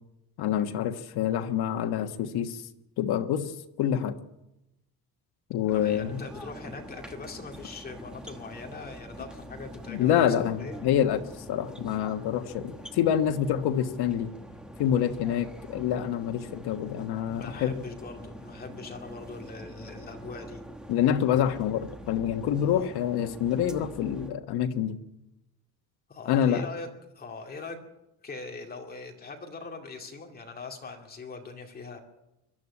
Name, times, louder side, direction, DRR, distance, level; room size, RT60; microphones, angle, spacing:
voice 1, 0.4-2.6 3.0-3.5 3.8-4.2 5.5-6.2 9.9-11.2 11.5-14.3 14.8-17.8 20.9-25.0 26.3-26.6, left 9 dB, 80° left, 8 dB, 1.5 m, -26 dB
voice 2, 5.7-10.2 10.6-10.8 15.0-15.2 17.2-20.6 22.7-22.9 26.1-26.9 27.1-27.8 28.2-32.0, left 3 dB, 25° left, 3 dB, 2.4 m, -41 dB
sound 1, 5.7-24.3, equal, ahead, 1.2 m, -45 dB
22.5 x 12.5 x 9.7 m, 0.91 s
cardioid pair, 180°, 38 cm